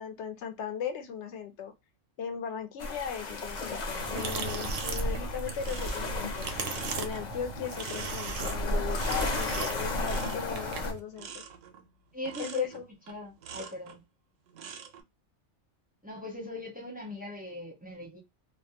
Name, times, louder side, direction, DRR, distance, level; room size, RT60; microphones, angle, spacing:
voice 1, 0.0-1.7 2.2-6.5 7.0-11.4 12.4-12.8, left 8 dB, 70° left, 0.9 m, -37 dB
sound 1, 2.8-10.9, left 2 dB, 50° left, 0.6 m, -34 dB
sound 2, 4.0-11.0, right 5 dB, 65° right, 0.7 m, -38 dB
sound 3, 4.0-14.0 14.5-15.0, right 7 dB, 85° right, 1.0 m, -47 dB
voice 2, 12.1-12.7 13.1-14.0 16.0-18.2, left 1 dB, 10° right, 0.5 m, -39 dB
2.5 x 2.1 x 2.7 m
omnidirectional pair, 1.3 m